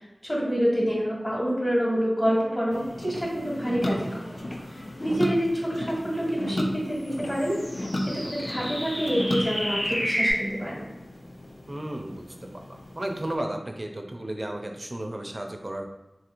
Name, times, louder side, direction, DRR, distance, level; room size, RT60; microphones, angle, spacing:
voice 1, 0.2-4.2 5.0-10.8, equal, 25° left, -4 dB, 1.2 m, -27 dB
sound 1, 2.7-13.3, left 1 dB, 55° left, 0.4 m, -35 dB
voice 2, 3.9-4.2 8.2-8.5 11.7-12.3 12.7-15.9, right 1 dB, 40° right, 3 dB, 0.4 m, -34 dB
sound 2, 7.1-10.3, equal, 75° left, 1.1 m, -31 dB
3.0 x 2.8 x 2.4 m, 0.99 s
wide cardioid pair, 50°, 0 cm